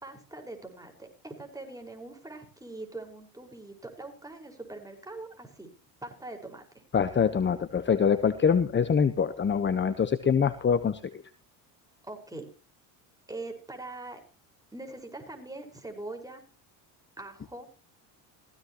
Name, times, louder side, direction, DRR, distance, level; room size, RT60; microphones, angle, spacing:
voice 1, 0.0-5.7 6.0-6.6 12.0-12.5 13.3-14.2 14.7-16.4 17.2-17.7, right 2 dB, 10° right, 3 dB, 5.2 m, -42 dB
voice 2, 6.9-11.1, left 6 dB, 25° left, 11 dB, 1.1 m, -24 dB
16.0 x 16.0 x 3.0 m, 0.36 s
supercardioid pair, 100°, 44 cm